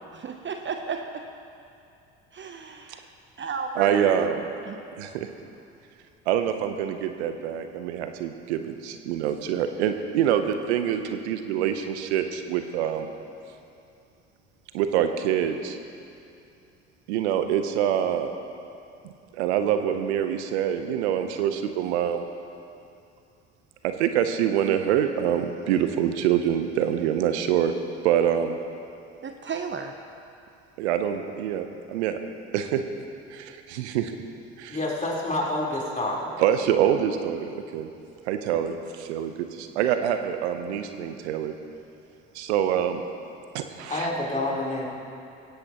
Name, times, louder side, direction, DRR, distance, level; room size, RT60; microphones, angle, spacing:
voice 1, 0.1-1.3 2.3-3.1 3.4-4.3 4.6-4.8 29.2-29.9, right 5 dB, 35° right, 5 dB, 0.9 m, -33 dB
voice 2, 3.8-4.4 5.0-5.3 6.3-13.1 14.7-15.8 17.1-18.3 19.3-22.3 23.8-27.7 28.0-28.6 30.8-32.2 32.5-32.8 33.3-34.1 34.6-34.8 36.4-37.9 38.3-41.5 42.3-43.0 43.5-44.0, right 9 dB, 75° right, 7 dB, 0.9 m, -25 dB
voice 3, 34.7-36.3 43.9-44.9, left 1 dB, 20° left, -4 dB, 4.0 m, -28 dB
17.5 x 16.0 x 3.0 m, 2.6 s
hypercardioid pair, 55°, 34 cm